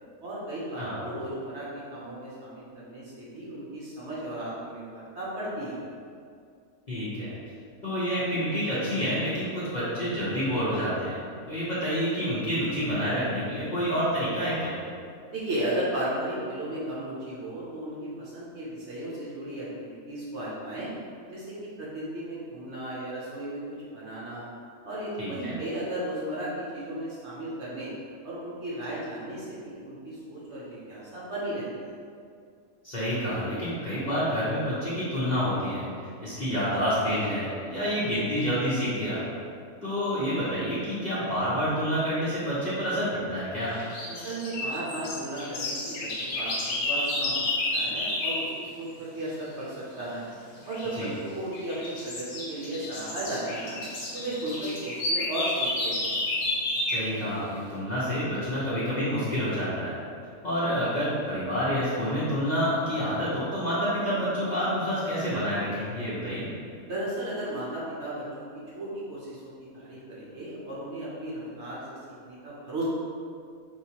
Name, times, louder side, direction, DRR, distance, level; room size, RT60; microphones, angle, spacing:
voice 1, 0.2-5.8 15.3-20.9 21.3-23.6 23.9-24.5 24.8-27.9 28.2-32.0 44.1-50.3 50.6-53.8 54.1-56.1 66.8-72.8, right 1 dB, 55° right, -7 dB, 1.0 m, -35 dB
voice 2, 6.9-7.4 7.8-11.2 11.5-14.7 25.2-25.5 32.8-35.9 36.2-39.2 39.8-43.7 51.0-51.1 56.9-59.9 60.4-66.5, equal, 35° left, -11 dB, 0.8 m, -28 dB
sound 1, 43.7-48.5 50.7-51.1 51.5-57.1, left 2 dB, 85° left, 1.4 m, -31 dB
4.6 x 3.2 x 2.8 m, 2.3 s
omnidirectional pair, 1.6 m